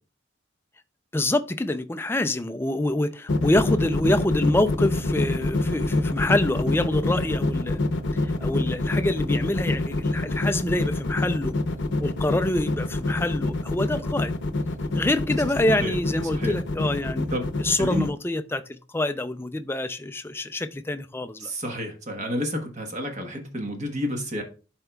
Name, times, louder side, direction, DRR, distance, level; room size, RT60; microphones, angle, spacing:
voice 1, 1.1-7.8 8.4-11.5 12.0-14.3 14.9-17.3 17.6-21.5, left 1 dB, 10° left, 0.4 m, -26 dB
sound 1, 3.3-18.1, left 2 dB, 65° left, 0.7 m, -25 dB
voice 2, 21.4-24.4, equal, 40° right, 1.2 m, -30 dB
11.5 x 4.5 x 2.3 m
head